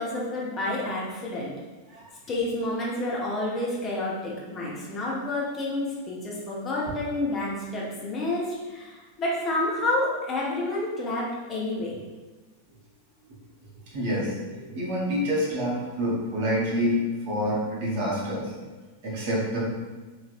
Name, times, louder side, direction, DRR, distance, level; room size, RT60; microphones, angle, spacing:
voice 1, 0.0-1.5 2.3-11.9, left 2 dB, 25° left, -4 dB, 0.9 m, -29 dB
voice 2, 13.9-18.5 19.0-19.7, equal, 50° right, -5 dB, 1.2 m, -27 dB
4.0 x 3.2 x 2.4 m, 1.3 s
figure-of-eight pair, 90°, 0 cm